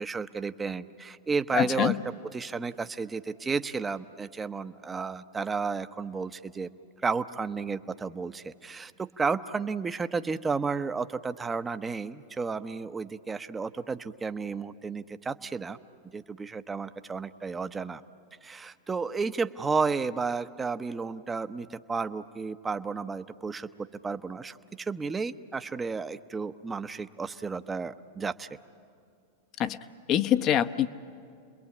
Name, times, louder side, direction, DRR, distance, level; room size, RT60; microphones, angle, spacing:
voice 1, 0.0-2.0 2.3-6.7 7.0-15.8 16.1-18.0 18.4-23.7 24.0-28.5, right 4 dB, 15° right, 11 dB, 0.9 m, -32 dB
voice 2, 1.6-2.0 29.6-29.8 30.1-30.9, left 10 dB, 40° left, 11 dB, 1.0 m, -24 dB
30.0 x 21.5 x 8.5 m, 2.4 s
hypercardioid pair, 105°, 0 cm